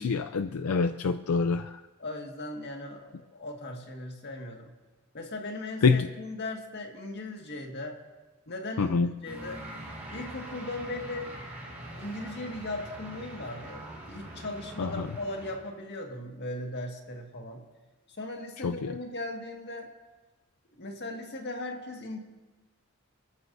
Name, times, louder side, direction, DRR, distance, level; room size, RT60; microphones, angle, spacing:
voice 1, 0.0-1.8 5.8-6.1 8.8-9.1 14.8-14.9 18.6-18.9, left 4 dB, 85° left, 8 dB, 0.5 m, -26 dB
voice 2, 2.0-4.7 5.1-8.0 8.5-9.6 10.1-11.4 12.0-17.7 18.1-19.9 20.8-22.2, left 2 dB, 50° left, 2 dB, 1.9 m, -38 dB
sound 1, 9.2-15.6, right 1 dB, 10° right, 5.2 m, -43 dB
29.0 x 14.5 x 2.7 m, 1.2 s
head